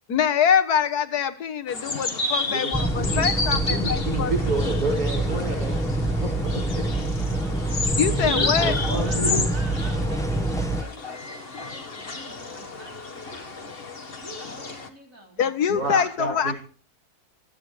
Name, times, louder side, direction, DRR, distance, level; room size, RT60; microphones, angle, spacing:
voice 1, 0.1-4.3 8.0-8.7 15.4-16.5, left 7 dB, 80° left, 11 dB, 1.8 m, -24 dB
sound 1, 1.7-14.9, left 3 dB, 40° left, 1.7 m, -31 dB
voice 2, 2.5-5.8 6.2-6.8 8.2-9.4 15.7-16.5, right 1 dB, 90° right, -3 dB, 6.3 m, -29 dB
sound 2, 2.7-10.8, right 2 dB, ahead, 1.1 m, -26 dB
voice 3, 7.1-7.9 8.3-13.8 14.2-15.5, right 2 dB, 60° right, 1 dB, 4.0 m, -46 dB
28.0 x 10.0 x 3.3 m, 0.40 s
omnidirectional pair, 1.6 m